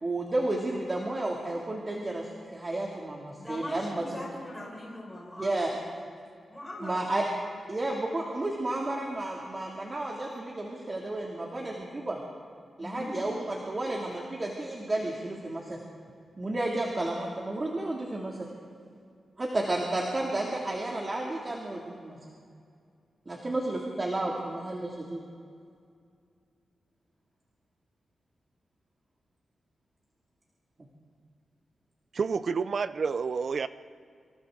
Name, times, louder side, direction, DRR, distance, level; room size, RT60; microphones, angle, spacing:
voice 1, 0.0-4.0 5.4-5.7 6.8-7.3 7.7-12.2 12.8-15.8 16.4-18.5 19.4-22.2 23.3-25.2, right 2 dB, 30° right, -2 dB, 2.5 m, -32 dB
voice 2, 3.3-5.9 6.5-7.1 12.8-13.1, left 1 dB, 5° left, -3 dB, 5.6 m, -41 dB
voice 3, 32.1-33.7, right 5 dB, 55° right, 13 dB, 0.6 m, -29 dB
27.0 x 26.5 x 3.8 m, 2.3 s
wide cardioid pair, 110°, 0 cm